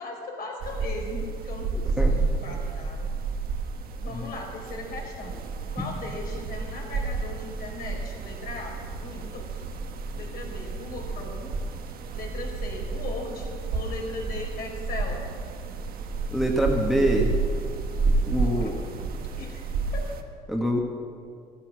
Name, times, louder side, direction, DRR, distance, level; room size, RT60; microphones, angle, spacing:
voice 1, 0.0-2.2 2.4-3.1 4.0-5.3 5.7-9.7 10.1-11.5 12.1-15.2 16.8-17.0 18.2-19.1 19.4-19.6 19.9-20.0, left 3 dB, 60° left, 0 dB, 4.2 m, -38 dB
sound 1, 0.6-20.2, right 4 dB, 60° right, 1.2 m, -30 dB
voice 2, 2.0-2.6 4.1-4.3 16.3-17.4 18.0-18.8 20.5-20.8, equal, ahead, 0 dB, 1.6 m, -26 dB
13.5 x 13.5 x 6.2 m, 2.3 s
cardioid pair, 110°, 17 cm